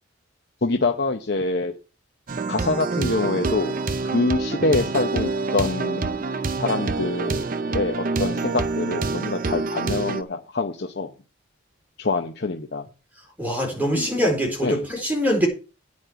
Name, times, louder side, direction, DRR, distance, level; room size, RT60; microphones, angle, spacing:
voice 1, 0.6-1.7 2.5-3.8 4.0-6.2 6.5-11.1 12.0-12.9 13.9-14.1 14.6-14.8, left 3 dB, 55° left, 0.8 m, -25 dB
sound 1, 2.3-10.2, right 3 dB, 40° right, 0.7 m, -27 dB
voice 2, 13.4-15.5, equal, 10° right, 4.1 m, -23 dB
9.4 x 5.3 x 8.0 m
head